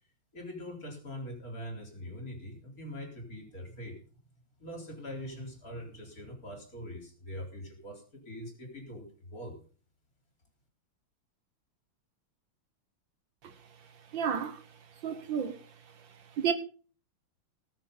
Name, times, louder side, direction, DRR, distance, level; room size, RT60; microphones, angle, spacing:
voice 1, 0.3-4.0 4.6-9.6, equal, 45° left, 4.7 m, -43 dB
voice 2, 14.1-14.6 15.0-15.6 16.4-16.5, right 7 dB, 70° right, 1.9 m, -30 dB
19.0 x 7.2 x 5.5 m
omnidirectional pair, 2.2 m